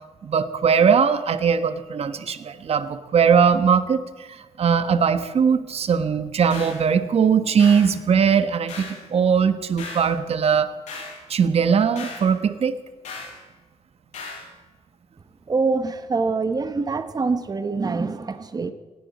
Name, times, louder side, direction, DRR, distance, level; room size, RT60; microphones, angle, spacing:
voice 1, 0.2-4.0 4.3-8.8 9.1-10.7 11.3-12.8, right 6 dB, 60° right, 10 dB, 1.3 m, -20 dB
sound 1, 6.5-6.8 7.6-7.9 8.7-9.0 9.8-10.1 10.9-11.2 12.0-12.3 13.0-13.4 14.1-14.5, left 4 dB, 90° left, 7.3 m, -36 dB
voice 2, 15.5-18.7, right 4 dB, 35° right, 10 dB, 1.1 m, -25 dB
19.0 x 17.5 x 4.2 m, 1.3 s
cardioid pair, 100°, 12 cm